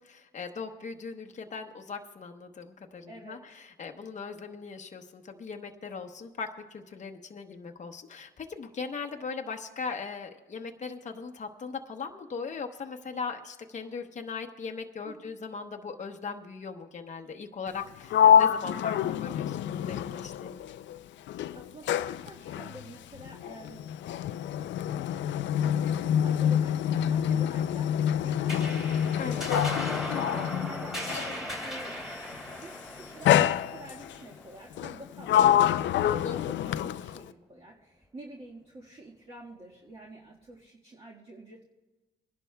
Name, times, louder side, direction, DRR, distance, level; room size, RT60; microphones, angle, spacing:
voice 1, 0.0-20.6 29.2-29.4 36.2-36.6, left 5 dB, 35° left, 4 dB, 0.9 m, -39 dB
voice 2, 3.1-3.4 15.0-15.3 21.5-24.4 25.5-28.7 29.2-32.3 32.6-41.6, right 1 dB, 30° right, -4 dB, 1.6 m, -48 dB
Sliding door, 17.7-21.0 21.3-31.4 32.3-32.6 33.3-34.2 34.8-37.3, left 9 dB, 70° left, 0.4 m, -26 dB
sound 1, 28.5-35.3, left 1 dB, ahead, 2.9 m, -38 dB
23.0 x 11.0 x 2.3 m, 1.1 s
cardioid pair, 90°, 20 cm